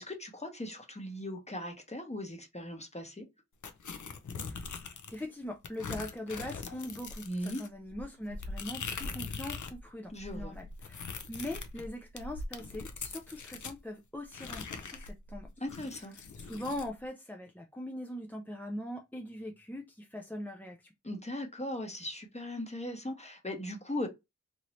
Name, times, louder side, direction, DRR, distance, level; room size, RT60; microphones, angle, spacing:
voice 1, 0.0-3.3 7.2-7.6 10.1-10.6 15.6-16.1 21.0-24.1, left 1 dB, 20° left, 0.9 m, -38 dB
sound 1, 3.6-5.2 5.6-9.8 10.1-13.8 14.3-16.9, left 4 dB, 90° left, 0.5 m, -42 dB
voice 2, 4.3-15.5 16.4-20.9, left 1 dB, 5° left, 0.4 m, -42 dB
2.9 x 2.6 x 3.0 m
wide cardioid pair, 75°, 29 cm